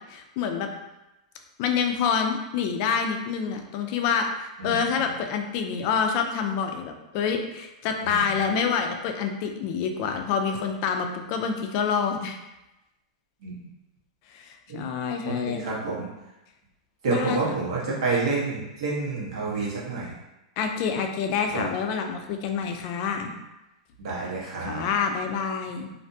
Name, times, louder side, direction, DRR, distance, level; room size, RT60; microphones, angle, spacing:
voice 1, 0.1-0.7 1.6-12.4 14.3-15.8 17.1-17.4 20.6-23.3 24.6-25.9, left 6 dB, 50° left, 4 dB, 0.4 m, -27 dB
voice 2, 8.0-8.4 13.4-13.6 14.7-14.8 15.2-16.1 17.0-20.1 21.5-21.6 24.0-24.9, right 4 dB, 70° right, -5 dB, 1.0 m, -29 dB
2.5 x 2.2 x 2.6 m, 0.97 s
hypercardioid pair, 130°, 3 cm